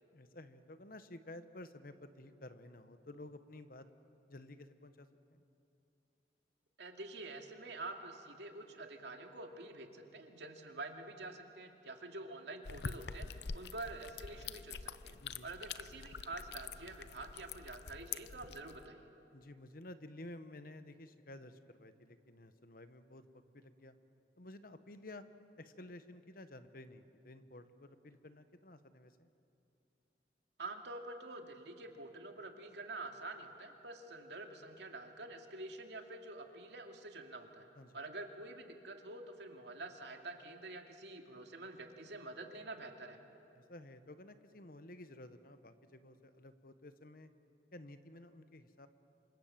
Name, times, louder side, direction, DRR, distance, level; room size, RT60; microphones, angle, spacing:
voice 1, 0.1-3.9 4.3-5.4 15.2-15.5 19.3-24.0 24.4-25.3 25.6-29.3 37.8-38.0 43.5-47.3 47.7-48.9, left 1 dB, 55° left, 10 dB, 1.2 m, -53 dB
voice 2, 6.8-15.2 15.4-19.1 30.6-37.7 37.9-43.2, right 2 dB, 75° right, 3 dB, 2.5 m, -47 dB
sound 1, 12.7-18.9, left 5 dB, 70° left, 0.7 m, -46 dB
27.5 x 25.5 x 7.5 m, 2.7 s
head